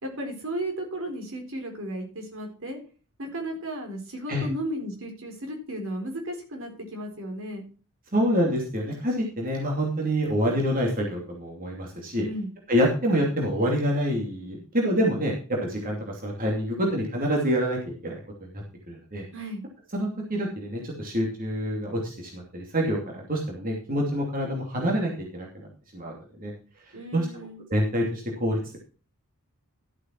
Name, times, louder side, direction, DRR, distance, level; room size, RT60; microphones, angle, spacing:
voice 1, 0.0-2.8 3.2-7.6 12.2-12.5 19.3-19.6 26.9-27.6, right 1 dB, 60° right, 3 dB, 4.0 m, -34 dB
voice 2, 8.1-12.2 12.7-15.3 15.6-18.2 18.5-19.2 19.9-26.5 27.1-27.3 27.7-28.8, equal, 40° right, -1 dB, 2.7 m, -27 dB
13.0 x 8.4 x 4.6 m, 0.38 s
head